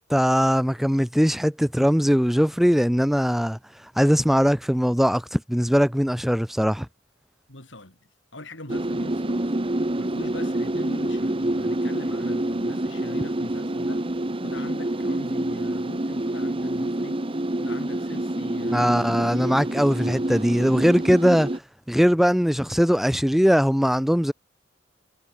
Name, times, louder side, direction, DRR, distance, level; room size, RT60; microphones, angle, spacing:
voice 1, 0.1-3.6 4.0-6.9 18.7-21.5 21.9-24.3, equal, ahead, 0.8 m, -20 dB
voice 2, 7.5-8.0 8.3-9.5 10.0-14.0 14.4-17.2 17.6-19.2, left 1 dB, 70° left, 7.6 m, -41 dB
sound 1, 8.7-21.6, right 1 dB, 30° right, 1.2 m, -27 dB
head